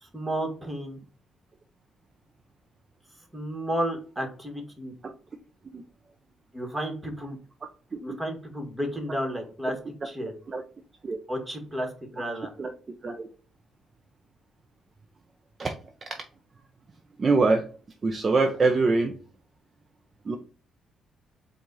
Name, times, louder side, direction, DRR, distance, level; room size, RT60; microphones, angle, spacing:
voice 1, 0.0-1.0 3.3-4.9 6.5-7.4 8.0-9.7 10.0-10.3 11.3-12.5, equal, 15° right, 3 dB, 1.5 m, -32 dB
voice 2, 17.2-17.7 18.0-19.1 20.2-20.4, right 3 dB, 35° right, 5 dB, 0.6 m, -24 dB
4.6 x 2.4 x 4.1 m, 0.39 s
cardioid pair, 90°, 0 cm